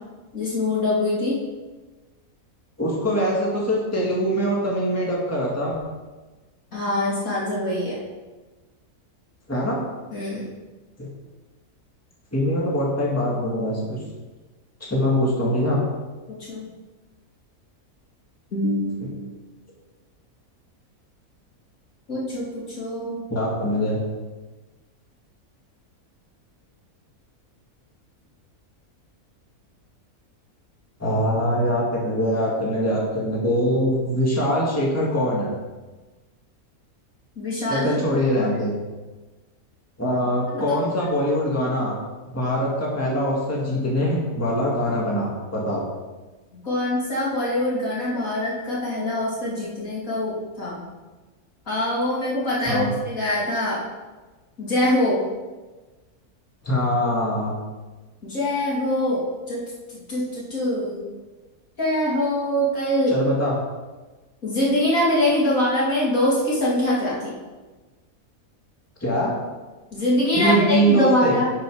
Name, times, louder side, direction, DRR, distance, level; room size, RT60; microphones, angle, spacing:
voice 1, 0.3-1.4 6.7-8.0 10.1-10.5 16.3-16.6 18.5-19.1 22.1-22.5 22.8-23.2 37.4-37.8 38.3-38.6 40.5-40.6 46.6-50.8 51.7-53.8 54.6-55.2 58.2-59.2 59.5-59.6 60.1-61.0 61.8-63.1 64.4-67.3 69.9-71.5, left 1 dB, 65° left, -6 dB, 3.2 m, -23 dB
voice 2, 2.8-5.8 9.5-9.8 11.0-11.1 12.3-14.0 14.8-15.8 19.0-19.1 23.3-24.0 31.0-35.5 37.7-38.7 40.0-41.9 42.3-45.8 52.7-52.9 56.6-57.5 63.1-63.6 69.0-69.3 70.3-71.4, equal, 10° left, -4 dB, 1.8 m, -23 dB
10.5 x 5.4 x 4.9 m, 1.2 s
omnidirectional pair, 1.6 m